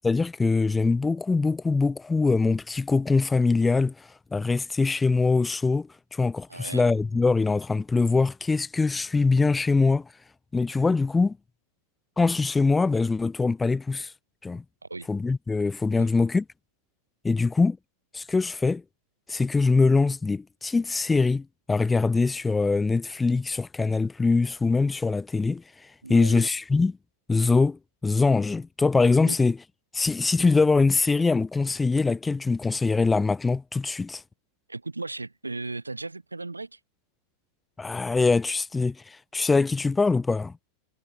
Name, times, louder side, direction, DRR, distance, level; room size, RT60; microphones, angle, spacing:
voice 1, 0.0-10.1 10.5-11.4 12.2-14.1 14.4-14.6 15.1-16.4 17.2-17.8 18.1-18.8 19.3-25.6 26.1-27.0 27.3-29.6 29.9-34.2 37.8-40.5, left 4 dB, 10° left, 0.7 m, -23 dB
voice 2, 6.5-6.9 14.9-15.1 16.0-16.1 26.0-26.5 29.3-29.4 34.7-36.8, right 3 dB, 80° right, 5.3 m, -36 dB
figure-of-eight pair, 90°, 0 cm